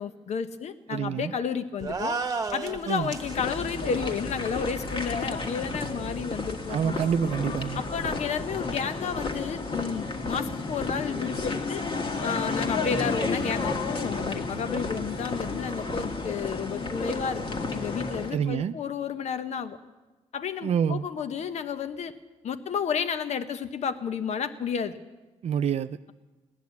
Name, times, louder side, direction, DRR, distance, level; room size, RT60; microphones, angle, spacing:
voice 1, 0.0-2.2 2.5-7.0 7.8-11.8 12.2-17.4 17.7-19.8 20.3-22.1 22.4-25.0, left 6 dB, 65° left, 11 dB, 1.0 m, -31 dB
voice 2, 0.9-1.3 2.9-3.1 6.7-7.8 18.3-18.7 20.6-21.1 25.4-26.0, right 8 dB, 60° right, 10 dB, 0.5 m, -27 dB
sound 1, 1.8-3.3, right 4 dB, 30° right, 1.2 m, -31 dB
sound 2, 3.1-18.3, left 3 dB, 45° left, 1.6 m, -32 dB
16.0 x 10.5 x 8.3 m, 1.2 s
cardioid pair, 85°, 12 cm